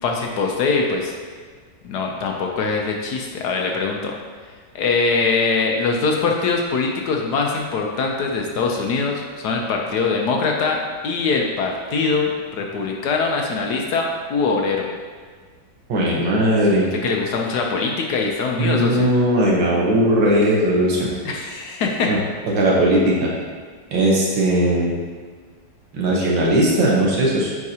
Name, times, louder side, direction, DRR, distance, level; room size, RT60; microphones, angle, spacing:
voice 1, 0.0-1.1 1.8-4.2 4.7-10.8 11.0-14.9 17.0-19.1 21.2-22.1, left 4 dB, 70° left, 1 dB, 1.1 m, -22 dB
voice 2, 15.9-16.9 18.6-21.1 22.1-22.2 22.5-23.3 23.9-24.9 25.9-27.5, right 1 dB, 90° right, -4 dB, 2.0 m, -18 dB
9.5 x 4.5 x 2.8 m, 1.6 s
omnidirectional pair, 2.0 m